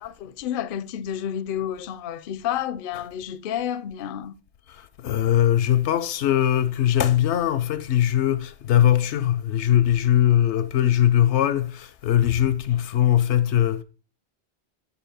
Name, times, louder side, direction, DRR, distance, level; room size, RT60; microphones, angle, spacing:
voice 1, 0.0-4.3, left 10 dB, 60° left, 0.6 m, -30 dB
voice 2, 5.0-13.8, left 11 dB, 85° left, 0.9 m, -20 dB
7.1 x 5.6 x 4.2 m
omnidirectional pair, 1.1 m